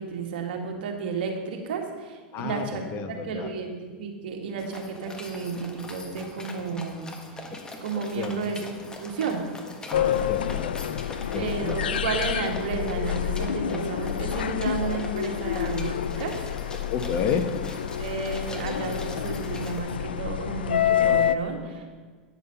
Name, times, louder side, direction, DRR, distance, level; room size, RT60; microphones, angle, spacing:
voice 1, 0.0-2.8 3.1-7.1 7.8-8.7 9.0-9.4 11.4-16.4 18.0-21.9, right 4 dB, 70° right, 3 dB, 1.9 m, -32 dB
voice 2, 2.3-3.5 8.1-8.3 9.9-11.0 11.3-11.8 16.9-17.5, left 7 dB, 45° left, 8 dB, 1.1 m, -30 dB
sound 1, 4.6-19.8, left 2 dB, 15° left, 1.4 m, -42 dB
sound 2, 9.9-21.4, left 10 dB, 90° left, 0.4 m, -28 dB
10.5 x 7.1 x 5.7 m, 1.5 s
hypercardioid pair, 105°, 5 cm